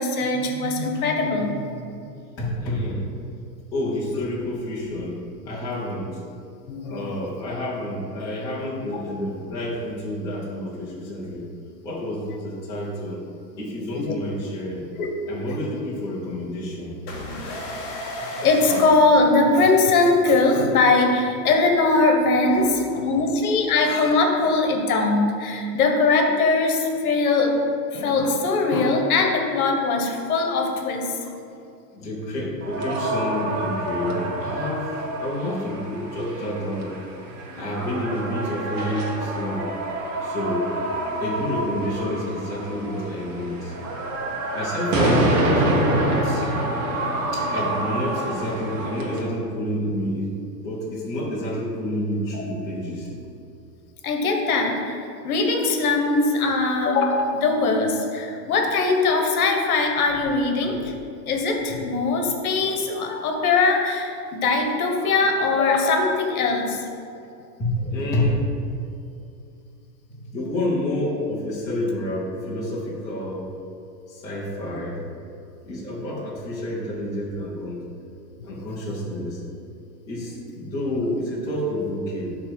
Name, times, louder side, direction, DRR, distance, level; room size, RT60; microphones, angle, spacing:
voice 1, 0.0-1.7 6.7-7.1 13.9-14.1 14.9-15.1 18.4-27.6 27.9-31.4 37.6-37.7 52.3-52.6 54.0-60.9 61.3-66.8 78.6-78.7, left 3 dB, 55° left, 2 dB, 1.3 m, -21 dB
voice 2, 2.4-3.1 3.7-6.2 6.9-11.5 11.8-13.2 13.6-14.9 15.3-17.0 22.4-22.7 22.9-23.0 31.9-37.0 37.6-39.7 40.2-40.7 41.2-43.9 44.5-46.5 47.3-50.3 50.6-53.1 61.7-61.8 67.6-68.5 70.3-73.5 74.1-75.0 75.6-77.8 78.4-79.4 80.1-82.4, left 1 dB, 5° left, -8 dB, 0.7 m, -29 dB
sound 1, 17.1-19.9, left 1 dB, 25° left, 1.1 m, -34 dB
sound 2, 32.6-49.2, right 1 dB, 50° right, 1.4 m, -27 dB
8.1 x 3.3 x 6.3 m, 2.6 s
hypercardioid pair, 160°, 50 cm